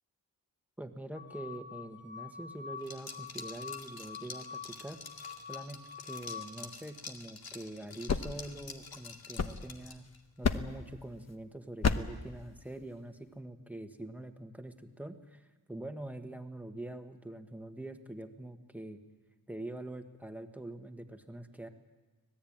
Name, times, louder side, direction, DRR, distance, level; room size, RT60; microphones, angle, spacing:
voice 1, 0.8-5.0 5.5-10.0 10.4-19.0 19.5-21.7, right 1 dB, 5° right, 6 dB, 1.5 m, -44 dB
sound 1, 1.1-6.6, left 6 dB, 30° left, 1.3 m, -46 dB
Liquid, 2.8-10.2, left 4 dB, 80° left, 2.3 m, -48 dB
sound 2, 7.8-10.0 10.4-10.9 11.8-12.3, left 5 dB, 45° left, 1.1 m, -33 dB
25.5 x 18.5 x 8.8 m, 1.2 s
wide cardioid pair, 150°, 36 cm